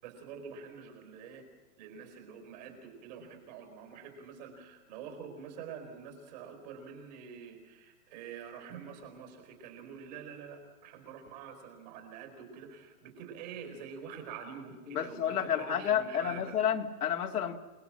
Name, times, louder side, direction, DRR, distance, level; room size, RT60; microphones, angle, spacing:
voice 1, 0.0-1.4 1.8-16.6, right 6 dB, 25° right, 5 dB, 4.6 m, -46 dB
voice 2, 14.9-17.6, left 9 dB, 70° left, 4 dB, 2.5 m, -30 dB
27.5 x 20.0 x 7.6 m, 1.3 s
hypercardioid pair, 180°, 46 cm